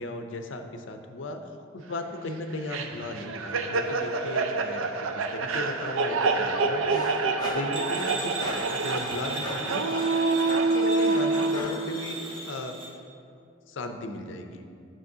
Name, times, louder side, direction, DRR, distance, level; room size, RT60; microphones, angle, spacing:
voice 1, 0.0-1.4 1.7-4.9 5.2-7.1 7.4-10.3 10.7-12.7 13.7-14.7, left 1 dB, 70° left, 6 dB, 0.5 m, -36 dB
sound 1, 2.7-11.6, right 3 dB, 90° right, 0.5 m, -27 dB
sound 2, 6.9-11.9, left 2 dB, 20° left, 0.6 m, -39 dB
sound 3, 7.7-12.9, right 2 dB, 25° right, 1.1 m, -38 dB
9.0 x 6.2 x 2.7 m, 2.4 s
head